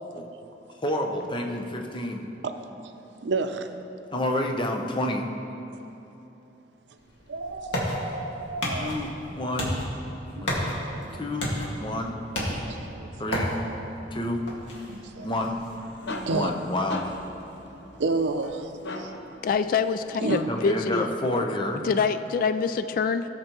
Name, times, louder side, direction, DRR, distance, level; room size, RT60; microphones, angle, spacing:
voice 1, 0.8-2.2 4.1-5.3 8.8-9.8 10.4-10.7 11.2-11.5 11.8-12.1 13.2-13.5 14.1-14.4 15.2-15.6 16.3-17.1 20.5-21.9, left 1 dB, 25° left, 2 dB, 0.8 m, -29 dB
voice 2, 2.4-3.8 7.3-8.9 10.4-10.6 10.9-11.3 12.7-13.4 14.9-15.3 16.3-16.5 18.0-18.6 20.2-20.4, right 3 dB, 75° right, 7 dB, 0.6 m, -31 dB
sound 1, 7.0-18.5, equal, 90° left, 1.9 m, -34 dB
sound 2, 15.6-20.8, left 2 dB, 70° left, 0.8 m, -39 dB
voice 3, 19.4-21.1 21.8-23.3, left 5 dB, 50° left, 11 dB, 0.3 m, -25 dB
17.0 x 6.7 x 3.0 m, 2.9 s
head